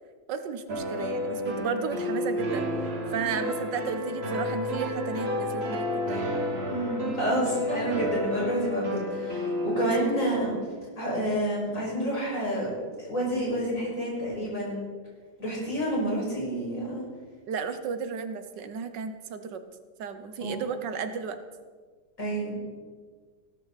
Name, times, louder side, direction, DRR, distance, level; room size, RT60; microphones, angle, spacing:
voice 1, 0.3-2.7 3.1-6.3 9.8-10.2 17.5-19.6 20.0-21.4, right 6 dB, 80° right, 9 dB, 1.6 m, -34 dB
sound 1, 0.7-10.6, left 1 dB, 35° right, 1.8 m, -31 dB
voice 2, 6.7-10.5 11.0-14.8 15.4-17.0 20.4-20.5 22.2-22.6, right 1 dB, 45° left, -5 dB, 6.2 m, -29 dB
17.0 x 13.5 x 4.1 m, 1.5 s
omnidirectional pair, 1.9 m